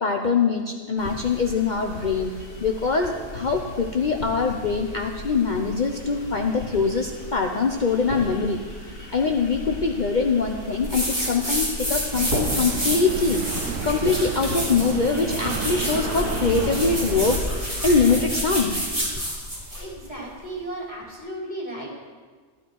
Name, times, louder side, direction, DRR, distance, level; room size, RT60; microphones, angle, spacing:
voice 1, 0.0-2.3 2.6-8.6 9.1-13.4 13.8-18.8, left 4 dB, 45° left, 3 dB, 0.8 m, -23 dB
sound 1, 1.0-18.1, equal, 85° left, 4.6 m, -36 dB
Rubbing palms, 10.8-19.9, equal, 15° right, 4.7 m, -29 dB
sound 2, 12.1-17.4, right 9 dB, 85° right, 0.9 m, -32 dB
voice 2, 19.7-21.9, right 1 dB, 35° right, -6 dB, 4.3 m, -35 dB
13.5 x 12.5 x 4.6 m, 1.5 s
omnidirectional pair, 1.2 m